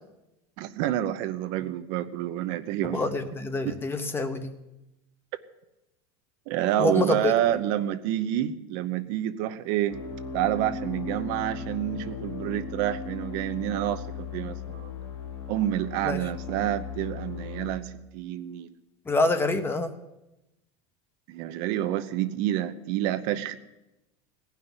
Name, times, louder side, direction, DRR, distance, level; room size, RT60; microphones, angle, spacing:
voice 1, 0.6-3.0 3.6-3.8 6.5-10.0 10.3-14.9 15.5-18.7 21.3-23.6, right 12 dB, 60° right, 8 dB, 0.8 m, -28 dB
voice 2, 2.8-4.6 6.8-7.3 16.0-16.2 19.1-19.9, left 2 dB, 15° left, 9 dB, 0.9 m, -26 dB
sound 1, 9.9-17.7, left 6 dB, 90° left, 1.5 m, -37 dB
17.0 x 5.8 x 9.6 m, 0.95 s
supercardioid pair, 135°, 14 cm